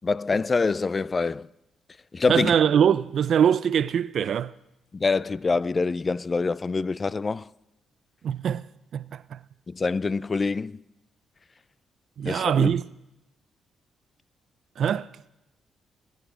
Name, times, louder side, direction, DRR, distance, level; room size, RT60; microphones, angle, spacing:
voice 1, 0.0-1.5 2.1-2.5 4.9-7.5 9.7-10.8 12.2-12.8, left 4 dB, 35° left, 0.3 m, -25 dB
voice 2, 2.3-4.5 8.2-8.7 8.9-9.4 12.2-12.8 14.8-15.1, right 8 dB, 65° right, 0.4 m, -22 dB
20.5 x 8.1 x 4.9 m
cardioid pair, 70°, 0 cm